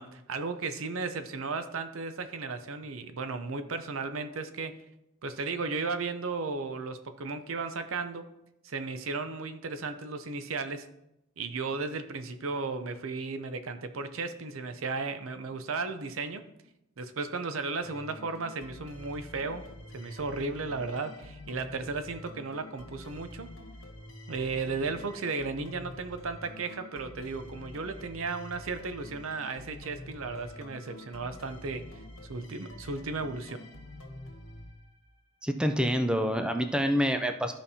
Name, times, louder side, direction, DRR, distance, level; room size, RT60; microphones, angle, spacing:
voice 1, 0.0-4.8 5.2-8.2 8.6-10.9 11.4-16.5 17.0-19.7 19.9-23.5 24.3-32.0 32.3-33.6, right 4 dB, 80° right, 10 dB, 0.6 m, -35 dB
sound 1, 17.8-35.4, left 1 dB, 80° left, 1.7 m, -47 dB
voice 2, 35.4-37.5, equal, 5° right, 6 dB, 0.4 m, -27 dB
13.0 x 5.2 x 2.8 m, 0.88 s
head